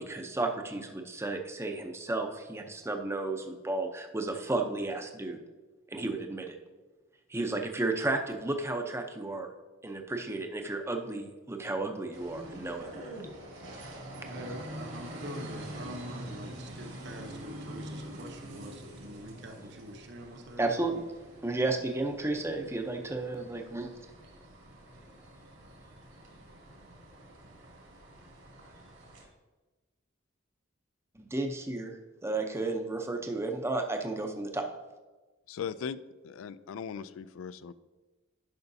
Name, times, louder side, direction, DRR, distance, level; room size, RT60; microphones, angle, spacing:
voice 1, 0.0-5.4 5.9-6.5 7.3-9.5 9.8-12.9 20.6-21.0 21.4-23.9 31.2-34.7, right 2 dB, 10° right, 4 dB, 0.6 m, -33 dB
sound 1, 12.1-29.3, right 1 dB, 70° right, 2.4 m, -46 dB
voice 2, 14.2-20.6, right 1 dB, 55° right, 4 dB, 0.8 m, -44 dB
voice 3, 35.5-36.0 36.2-37.7, left 7 dB, 75° left, 16 dB, 0.3 m, -38 dB
10.5 x 5.7 x 2.7 m, 1.2 s
head